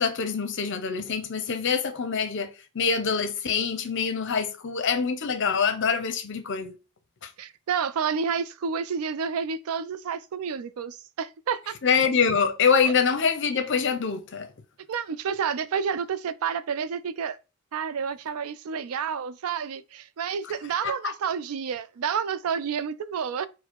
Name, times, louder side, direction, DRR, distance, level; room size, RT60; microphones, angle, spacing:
voice 1, 0.0-6.8 7.2-7.3 11.8-14.5 20.8-21.1, left 6 dB, 60° left, 0.7 m, -25 dB
voice 2, 7.4-11.7 14.9-17.4 17.7-23.5, right 6 dB, 85° right, 0.4 m, -30 dB
4.6 x 2.1 x 4.5 m
head